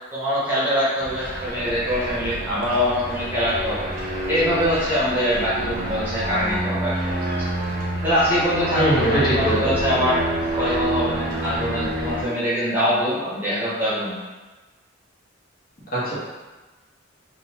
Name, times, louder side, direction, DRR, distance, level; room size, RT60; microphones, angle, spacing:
voice 1, 0.1-3.9 4.3-6.9 8.0-8.8 9.1-10.3 10.5-14.2, equal, 10° right, -10 dB, 0.9 m, -23 dB
sound 1, 1.0-12.2, right 1 dB, 45° right, 0.7 m, -28 dB
voice 2, 8.8-9.7 15.9-16.1, right 1 dB, 50° left, -9 dB, 1.2 m, -21 dB
3.7 x 2.3 x 2.9 m, 1.2 s
head